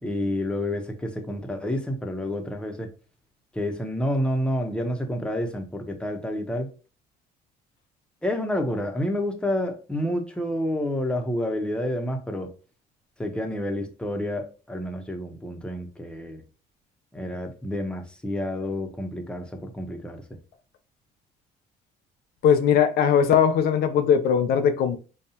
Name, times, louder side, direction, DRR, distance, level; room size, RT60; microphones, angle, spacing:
voice 1, 0.0-2.9 3.5-6.7 8.2-12.5 13.2-16.4 17.1-20.2, left 1 dB, 5° left, 0.8 m, -29 dB
voice 2, 22.4-25.0, left 8 dB, 70° left, 0.5 m, -20 dB
5.3 x 2.3 x 2.8 m
cardioid pair, 110°, 17 cm